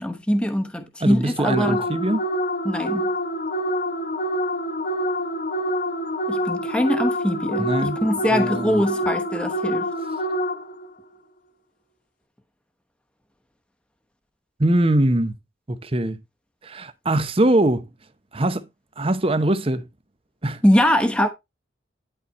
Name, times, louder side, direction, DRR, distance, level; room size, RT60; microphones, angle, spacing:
voice 1, 0.0-1.9 2.6-3.1 6.3-9.9 20.6-21.3, equal, 5° left, 1.0 m, -22 dB
voice 2, 1.0-2.2 7.6-8.0 8.3-8.8 14.6-15.3 15.7-16.2 16.6-17.9 18.3-18.7 19.0-19.9 20.4-20.6, right 1 dB, 30° right, 0.8 m, -22 dB
sound 1, 1.5-10.9, equal, 45° left, 1.0 m, -26 dB
11.0 x 4.2 x 4.2 m
head